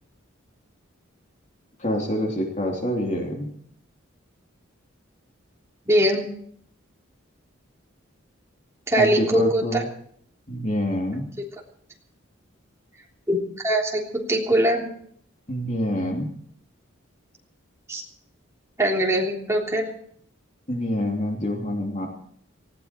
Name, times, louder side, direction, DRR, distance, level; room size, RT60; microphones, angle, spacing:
voice 1, 1.8-3.5 9.0-9.9 10.5-11.3 15.5-16.3 20.7-22.1, left 1 dB, 35° left, 1 dB, 2.9 m, -26 dB
voice 2, 5.9-6.3 8.9-9.8 13.3-14.9 17.9-18.0 18.8-19.9, right 1 dB, 15° right, -2 dB, 3.4 m, -22 dB
19.5 x 16.5 x 4.5 m, 0.65 s
head